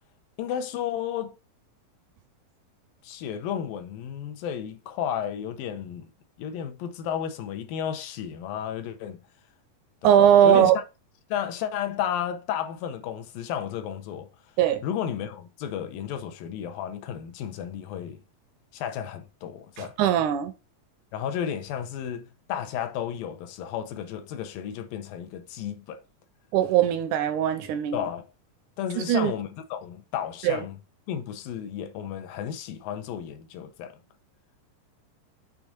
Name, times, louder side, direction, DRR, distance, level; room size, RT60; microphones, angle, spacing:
voice 1, 0.4-1.4 3.0-6.1 6.4-9.2 10.0-10.8 11.3-14.3 14.8-18.2 18.7-20.0 21.1-26.0 27.9-28.3 28.8-30.8 31.1-34.0, left 9 dB, 80° left, 2.6 m, -33 dB
voice 2, 10.0-10.8 14.6-14.8 19.8-20.5 26.5-28.0 29.1-29.3 30.4-30.6, right 10 dB, 80° right, 1.8 m, -20 dB
6.7 x 3.6 x 5.9 m
omnidirectional pair, 4.0 m